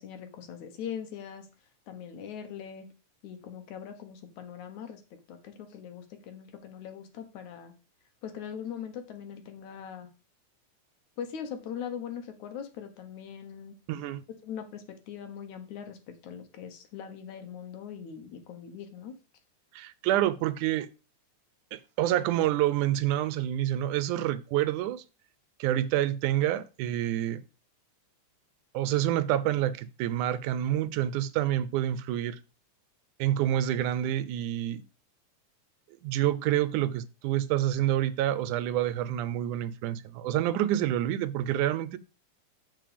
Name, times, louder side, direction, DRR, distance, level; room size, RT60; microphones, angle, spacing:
voice 1, 0.0-1.5 1.9-2.9 3.2-5.0 5.3-7.7 8.2-10.1 11.2-13.7 14.4-19.2, left 8 dB, 75° left, 2.7 m, -41 dB
voice 2, 13.9-14.2 19.7-20.9 21.7-25.0 25.6-27.4 28.7-32.4 33.2-34.8 36.0-42.0, right 12 dB, 85° right, 2.2 m, -28 dB
7.6 x 7.4 x 5.1 m
omnidirectional pair, 3.5 m